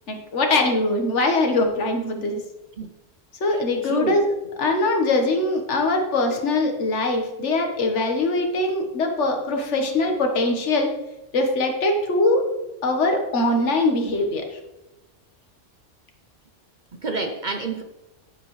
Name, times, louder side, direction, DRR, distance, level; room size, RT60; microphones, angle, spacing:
voice 1, 0.1-2.4 3.4-4.3 4.6-10.9 11.3-12.5 12.8-14.6, left 2 dB, 65° left, 3 dB, 1.6 m, -22 dB
voice 2, 3.9-4.2 17.0-17.8, right 3 dB, 45° right, 6 dB, 0.7 m, -27 dB
10.0 x 9.2 x 3.2 m, 0.99 s
omnidirectional pair, 1.3 m